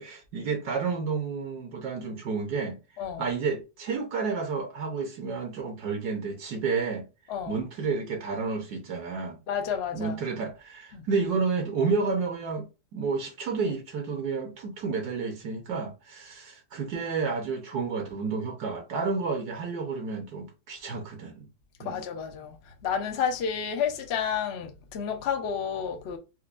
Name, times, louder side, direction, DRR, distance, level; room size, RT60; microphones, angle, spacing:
voice 1, 0.0-2.8 3.2-7.1 7.5-9.4 9.9-12.7 12.9-21.5 21.8-22.0, right 4 dB, 70° right, 1.2 m, -30 dB
voice 2, 3.0-3.3 7.3-7.6 9.5-10.2 10.9-11.1 21.8-22.6 22.8-26.2, left 7 dB, 70° left, 0.6 m, -30 dB
4.4 x 2.1 x 2.4 m
omnidirectional pair, 1.9 m